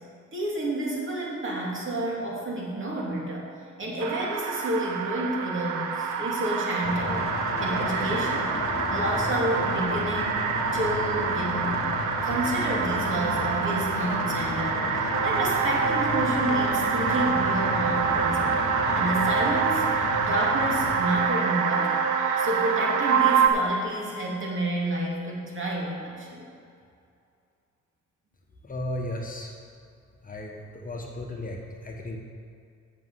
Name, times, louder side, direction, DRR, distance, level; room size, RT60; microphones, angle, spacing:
voice 1, 0.3-3.5 3.8-7.3 7.6-8.5 8.9-10.4 10.7-11.8 12.2-18.6 18.9-19.8 20.2-22.1 22.4-26.5, right 1 dB, 40° right, -3 dB, 2.8 m, -30 dB
sound 1, 4.0-23.5, right 6 dB, 85° right, 0.9 m, -26 dB
sound 2, 6.8-21.2, left 4 dB, 45° left, 1.1 m, -33 dB
voice 2, 28.6-29.5 30.2-32.2, left 1 dB, 25° left, 0 dB, 1.3 m, -35 dB
7.9 x 6.4 x 7.8 m, 2.4 s
cardioid pair, 90°, 30 cm